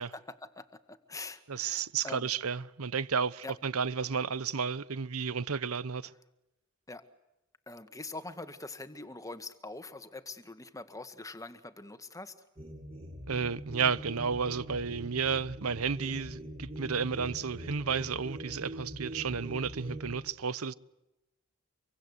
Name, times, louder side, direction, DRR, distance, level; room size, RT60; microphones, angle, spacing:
voice 1, 0.1-2.3 3.4-3.5 6.9-7.1 7.7-12.3, left 2 dB, 15° left, 1.7 m, -44 dB
voice 2, 1.5-6.1 13.3-20.7, right 6 dB, 85° right, 0.9 m, -32 dB
sound 1, 12.6-20.2, right 1 dB, 30° right, 7.6 m, -43 dB
26.0 x 24.5 x 8.2 m
head